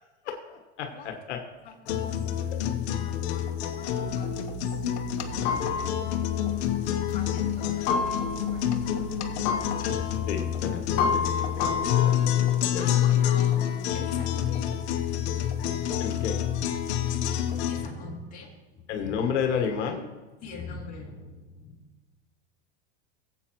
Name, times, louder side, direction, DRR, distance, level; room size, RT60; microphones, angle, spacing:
voice 1, 0.2-0.9 1.3-1.4 10.3-12.3 12.7-12.9 16.0-16.4 18.9-20.1, left 7 dB, 90° left, 4 dB, 1.4 m, -31 dB
voice 2, 1.6-2.1 2.9-4.8 7.1-9.2 12.8-14.7 16.5-16.7 17.5-19.2 20.4-21.8, left 3 dB, 25° left, -5 dB, 3.0 m, -43 dB
sound 1, 1.9-17.9, left 10 dB, 70° left, 1.2 m, -27 dB
sound 2, 5.2-13.0, left 5 dB, 50° left, 1.9 m, -32 dB
17.5 x 8.1 x 3.0 m, 1.2 s
supercardioid pair, 140°, 34 cm